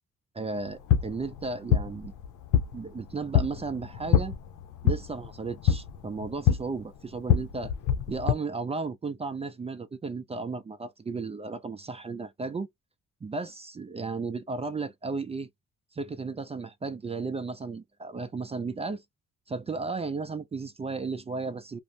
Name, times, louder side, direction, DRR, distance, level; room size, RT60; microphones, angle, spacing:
voice 1, 0.3-2.1 2.7-4.3 4.8-7.7 8.1-12.7 13.2-15.5 15.9-19.0 19.5-21.8, right 4 dB, 20° right, 0.4 m, -34 dB
sound 1, 0.6-8.3, left 9 dB, 90° left, 0.6 m, -27 dB
2.5 x 2.0 x 3.1 m
cardioid pair, 90°, 30 cm